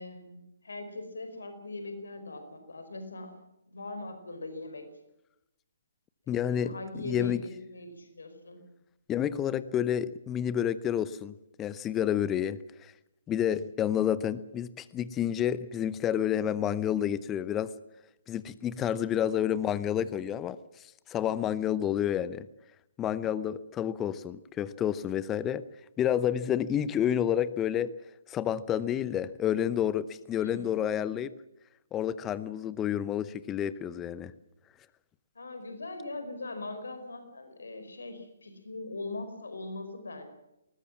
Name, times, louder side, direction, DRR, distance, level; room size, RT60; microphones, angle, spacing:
voice 1, 0.0-3.3 3.7-4.9 6.3-8.6 19.0-19.1 30.4-30.8 35.3-40.3, left 2 dB, 70° left, 8 dB, 4.9 m, -41 dB
voice 2, 6.3-6.8 7.0-7.4 9.1-12.9 13.3-17.7 18.3-22.5 23.0-25.6 26.0-27.9 28.3-31.3 31.9-34.3, left 10 dB, 15° left, 17 dB, 0.8 m, -29 dB
20.5 x 19.5 x 7.4 m, 0.88 s
figure-of-eight pair, 135°, 0 cm